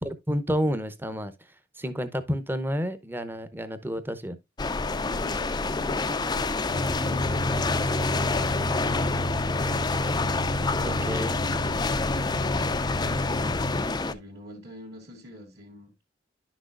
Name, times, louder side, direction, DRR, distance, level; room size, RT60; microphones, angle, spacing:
voice 1, 0.0-1.3 1.8-4.4 10.8-11.3, equal, 10° right, 0.8 m, -30 dB
sound 1, 4.6-14.1, left 3 dB, 20° left, 0.4 m, -28 dB
voice 2, 4.9-9.1 10.7-12.5 13.0-15.9, equal, 55° right, 2.0 m, -46 dB
sound 2, 6.7-13.9, left 1 dB, 55° left, 0.7 m, -31 dB
11.0 x 6.1 x 2.5 m
head